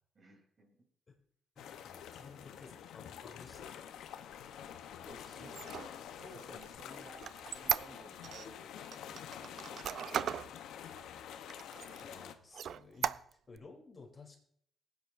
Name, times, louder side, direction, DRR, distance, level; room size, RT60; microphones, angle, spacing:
voice 1, 0.1-0.8 5.0-5.8 6.2-11.1, right 2 dB, 40° right, 1 dB, 3.1 m, -57 dB
voice 2, 1.5-3.8 6.2-6.4 12.0-14.4, left 3 dB, 30° left, -1 dB, 3.1 m, -55 dB
sound 1, 1.6-12.4, left 9 dB, 80° left, 0.7 m, -48 dB
Squeak, 5.4-8.5 8.9-10.5 11.0-11.1 11.5-12.1 12.5-13.6, right 9 dB, 65° right, 0.3 m, -37 dB
19.0 x 9.4 x 2.5 m, 0.65 s
cardioid pair, 90°, 0 cm